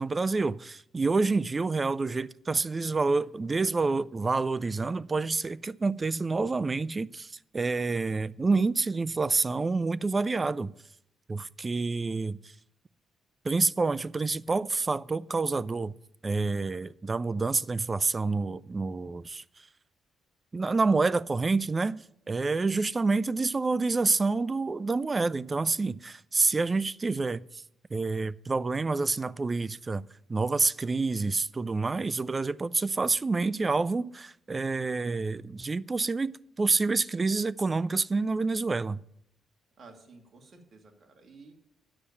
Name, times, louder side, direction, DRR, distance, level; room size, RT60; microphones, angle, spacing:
voice 1, 0.0-10.7 11.3-12.5 13.4-15.9 16.2-19.4 20.5-27.6 27.9-39.0, right 3 dB, 25° right, 0.4 m, -28 dB
voice 2, 39.8-41.5, right 3 dB, 45° right, 2.2 m, -53 dB
9.9 x 6.9 x 8.5 m
cardioid pair, 90°, 0 cm